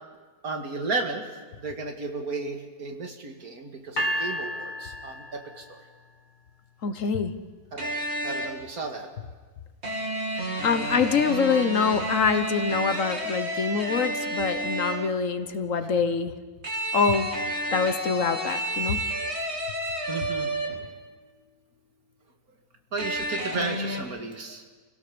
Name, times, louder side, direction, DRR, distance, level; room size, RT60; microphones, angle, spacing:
voice 1, 0.4-1.3 1.6-5.8 7.7-7.9 8.2-9.1 20.1-20.6 22.9-24.6, right 3 dB, 70° right, 3 dB, 2.5 m, -33 dB
sound 1, 4.0-6.1, equal, 30° left, 1.7 m, -32 dB
voice 2, 6.8-7.3 10.6-16.3 16.9-17.3 17.7-19.0, left 5 dB, 60° left, 9 dB, 1.4 m, -25 dB
sound 2, 7.8-8.7 9.8-15.2 16.6-21.0 23.0-24.0, right 1 dB, 45° right, 3.0 m, -31 dB
28.0 x 17.0 x 7.0 m, 1.4 s
omnidirectional pair, 1.6 m